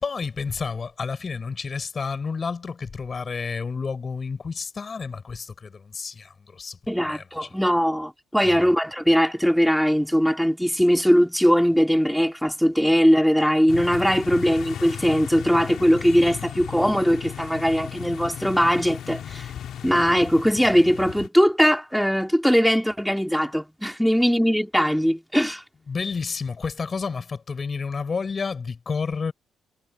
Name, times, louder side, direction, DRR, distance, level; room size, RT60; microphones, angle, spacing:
voice 1, 0.0-6.8 7.0-7.6 8.4-8.6 25.9-29.3, left 5 dB, 40° left, 5.5 m, -30 dB
voice 2, 6.9-19.5 19.8-25.6, equal, ahead, 2.5 m, -20 dB
sound 1, 13.7-21.3, left 9 dB, 70° left, 2.7 m, -36 dB
cardioid pair, 90°, 0 cm